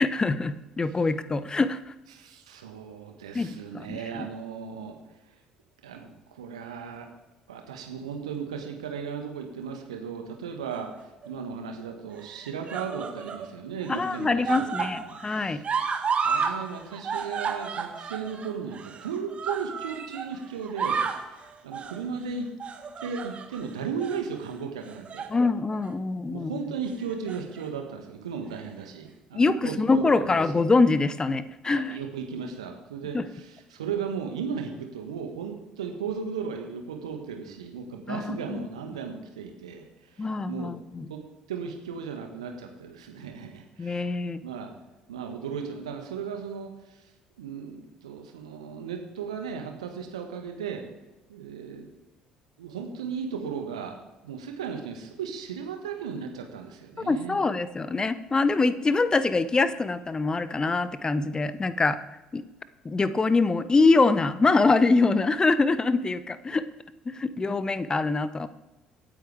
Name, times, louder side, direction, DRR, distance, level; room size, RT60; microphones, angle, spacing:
voice 1, 0.0-1.8 3.3-4.3 13.9-15.6 25.3-26.5 29.3-32.0 33.1-33.2 38.1-38.6 40.2-41.1 43.8-44.4 57.0-62.0 62.3-62.4 62.8-66.6 67.1-68.5, left 3 dB, 20° left, 14 dB, 0.9 m, -24 dB
voice 2, 2.1-5.0 5.8-7.1 7.5-10.9 11.3-15.6 16.2-21.0 21.6-22.5 23.0-25.3 26.3-30.4 31.7-40.7 41.1-41.2 41.5-44.1 44.4-44.7 45.1-47.1 47.4-50.8 51.3-51.9 52.6-54.0 54.2-57.4, right 6 dB, 75° right, 4 dB, 1.7 m, -36 dB
sound 1, 10.7-11.3 12.2-13.5 13.8-16.6 16.8-20.3 20.6-21.3 21.7-22.0 22.6-23.6 24.0-24.2 24.9-25.4 25.7-25.9 27.0-27.7 28.5-28.6, right 6 dB, 35° right, 1.5 m, -32 dB
24.5 x 9.2 x 3.6 m, 1.0 s
figure-of-eight pair, 55°, 3 cm